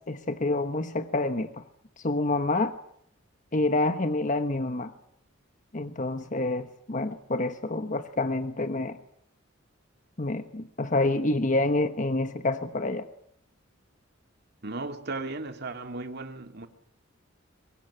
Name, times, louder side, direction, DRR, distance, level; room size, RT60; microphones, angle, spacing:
voice 1, 0.1-1.6 2.0-2.8 3.5-4.9 5.7-9.0 10.2-13.1, left 2 dB, 40° left, 1.2 m, -27 dB
voice 2, 14.6-16.7, right 3 dB, 55° right, 2.4 m, -36 dB
24.0 x 21.0 x 9.9 m
head